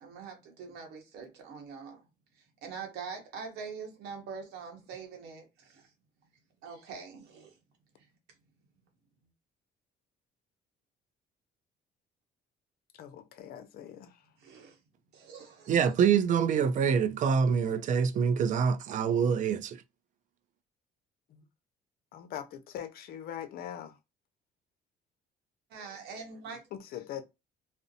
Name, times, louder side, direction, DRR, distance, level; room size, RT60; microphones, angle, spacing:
voice 1, 0.0-2.0 2.6-5.9 6.6-7.6 8.0-8.1 14.4-14.8 15.1-15.7 25.7-26.6, right 5 dB, 80° right, 0.9 m, -44 dB
voice 2, 12.9-14.3 21.3-21.4 22.1-24.0 26.7-27.2, left 10 dB, 65° left, 0.6 m, -42 dB
voice 3, 15.7-19.8, right 7 dB, 50° right, 0.4 m, -25 dB
2.5 x 2.1 x 2.6 m
cardioid pair, 110°, 17 cm